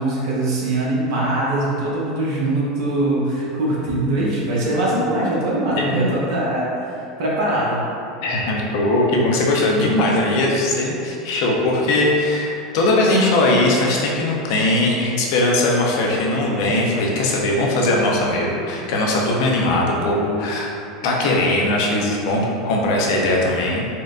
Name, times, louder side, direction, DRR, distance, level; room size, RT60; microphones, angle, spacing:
voice 1, 0.0-6.9 7.2-7.8, right 1 dB, 65° right, -6 dB, 0.9 m, -22 dB
voice 2, 5.8-6.1 8.2-20.7 21.0-23.9, left 1 dB, 65° left, -2 dB, 0.6 m, -19 dB
4.3 x 2.2 x 2.5 m, 2.5 s
hypercardioid pair, 90°, 3 cm